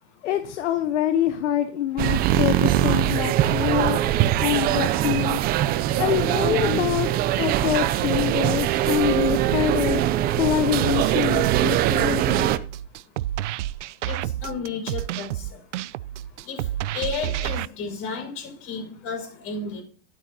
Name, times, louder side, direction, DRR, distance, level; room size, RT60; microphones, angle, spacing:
voice 1, 0.2-4.0 4.4-5.4 6.0-7.1 7.4-10.0 10.4-12.5, left 11 dB, 70° left, 8 dB, 1.2 m, -25 dB
sound 1, 2.0-12.6, right 13 dB, 25° right, 0.5 m, -22 dB
sound 2, 10.8-17.7, right 13 dB, 70° right, 0.6 m, -30 dB
voice 2, 14.1-15.5 16.5-16.6 16.9-19.8, left 5 dB, 40° left, 2 dB, 5.9 m, -32 dB
12.5 x 11.5 x 2.9 m, 0.39 s
hypercardioid pair, 130°, 37 cm